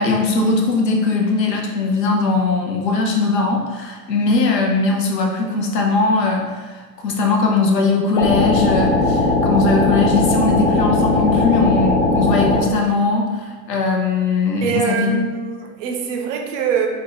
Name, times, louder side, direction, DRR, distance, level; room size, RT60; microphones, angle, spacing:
voice 1, 0.0-15.2, left 3 dB, 80° left, 1 dB, 0.7 m, -19 dB
sound 1, 8.2-12.6, left 2 dB, 25° left, 0.4 m, -18 dB
voice 2, 14.6-16.9, right 7 dB, 50° right, 3 dB, 0.5 m, -23 dB
2.7 x 2.1 x 3.6 m, 1.3 s
figure-of-eight pair, 90°, 49 cm